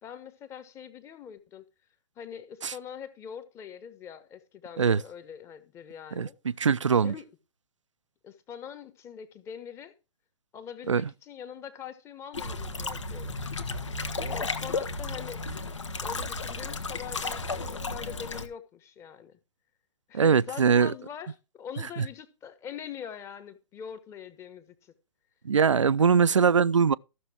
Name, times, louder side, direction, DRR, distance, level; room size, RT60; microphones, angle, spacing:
voice 1, 0.0-1.6 2.2-6.4 7.0-7.3 8.2-9.9 10.5-13.5 14.2-15.5 16.0-19.4 20.1-24.9, left 8 dB, 15° left, 1.3 m, -43 dB
voice 2, 6.2-7.1 10.9-11.1 20.1-20.9 22.0-22.1 25.4-26.9, right 6 dB, 75° right, 0.5 m, -22 dB
sound 1, 12.3-18.5, left 3 dB, 70° left, 1.7 m, -33 dB
14.0 x 6.7 x 4.6 m
figure-of-eight pair, 125°, 16 cm